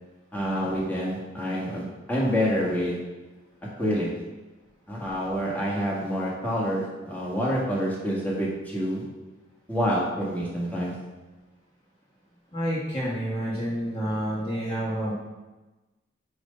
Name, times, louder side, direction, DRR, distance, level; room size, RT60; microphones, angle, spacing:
voice 1, 0.3-3.1 3.8-4.2 4.9-9.1 9.7-11.0, equal, 10° left, -6 dB, 1.8 m, -27 dB
voice 2, 12.5-15.1, equal, 30° left, -7 dB, 1.4 m, -29 dB
6.4 x 5.4 x 5.2 m, 1.1 s
head